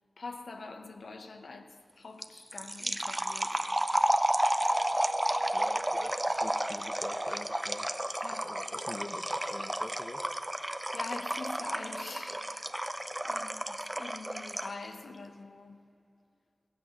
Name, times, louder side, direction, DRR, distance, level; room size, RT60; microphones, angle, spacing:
voice 1, 0.2-3.6 8.2-8.6 10.9-12.5 12.8-12.9 13.2-15.8, left 3 dB, 85° left, 0.8 m, -44 dB
sound 1, 2.2-14.8, right 1 dB, 15° right, 0.5 m, -32 dB
sound 2, 3.3-8.9, right 2 dB, 65° right, 1.1 m, -50 dB
voice 2, 5.5-7.9 8.4-10.2, left 2 dB, 35° left, 0.5 m, -44 dB
14.5 x 5.9 x 8.6 m
wide cardioid pair, 90°, 0 cm